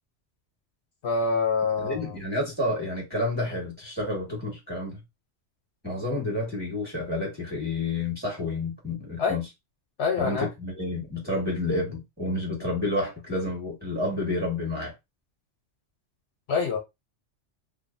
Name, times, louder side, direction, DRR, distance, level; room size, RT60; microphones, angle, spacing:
voice 1, 1.0-2.1 9.2-9.4 10.0-10.5 16.5-16.8, left 4 dB, 65° left, 0.9 m, -25 dB
voice 2, 1.8-5.0 5.8-9.4 10.2-14.9, left 2 dB, 10° right, 1.6 m, -30 dB
2.7 x 2.5 x 2.5 m
omnidirectional pair, 1.2 m